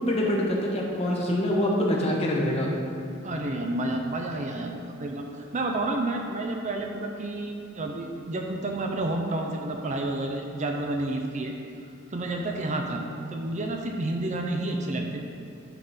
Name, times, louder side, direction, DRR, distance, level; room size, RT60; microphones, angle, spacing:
voice 1, 0.1-2.7, left 1 dB, 30° left, -2 dB, 1.2 m, -25 dB
voice 2, 3.2-5.3 5.5-11.6 12.1-13.0 13.3-15.2, right 2 dB, 35° right, 2 dB, 0.6 m, -30 dB
9.7 x 3.8 x 5.7 m, 2.6 s
head